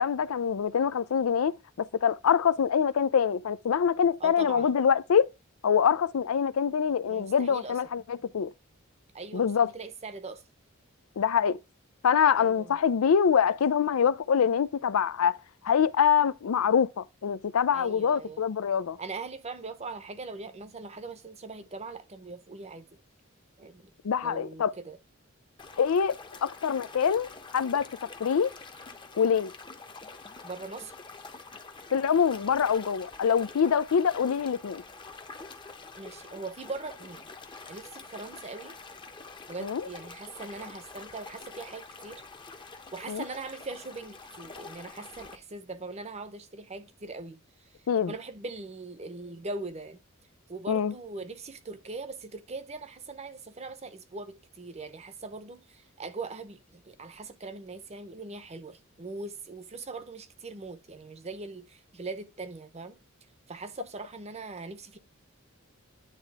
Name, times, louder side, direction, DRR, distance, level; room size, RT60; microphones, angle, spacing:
voice 1, 0.0-5.3 5.6-8.5 9.3-9.7 11.2-11.6 12.0-15.4 15.6-19.0 24.0-24.7 25.8-26.1 26.4-27.9 28.2-28.5 29.2-29.5 31.9-34.8 39.6-39.8 43.1-43.2 47.9-48.1 50.7-50.9, left 7 dB, 90° left, 0.4 m, -25 dB
voice 2, 4.2-4.8 7.1-8.1 9.1-10.4 12.4-12.8 17.7-18.4 19.0-22.9 23.6-23.9 24.2-25.0 30.4-30.9 36.0-37.3 37.7-38.8 39.5-42.2 42.9-47.8 48.1-50.0 50.5-63.0 63.5-65.0, right 3 dB, 30° right, 0.8 m, -41 dB
sound 1, 25.6-45.4, left 4 dB, 25° left, 0.8 m, -46 dB
9.9 x 3.4 x 3.4 m
head